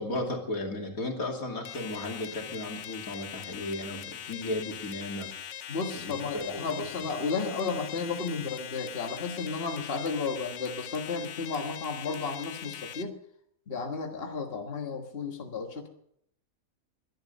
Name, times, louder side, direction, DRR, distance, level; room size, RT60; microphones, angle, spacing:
voice 1, 0.0-5.3 5.9-6.6, left 1 dB, 80° left, 1 dB, 3.1 m, -35 dB
sound 1, 1.6-13.0, left 10 dB, 65° left, 1.1 m, -42 dB
voice 2, 5.7-13.1 13.7-15.9, left 4 dB, 45° left, 3 dB, 1.8 m, -33 dB
22.0 x 11.0 x 5.4 m, 0.71 s
omnidirectional pair, 1.4 m